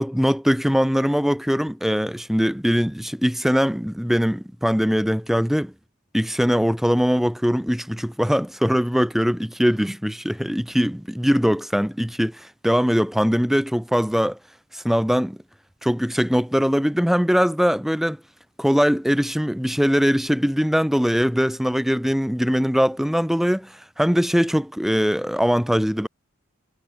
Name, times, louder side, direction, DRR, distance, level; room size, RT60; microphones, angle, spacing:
voice 1, 0.0-5.7 6.1-14.4 14.7-15.4 15.8-18.2 18.6-26.1, equal, ahead, 0.7 m, -21 dB
head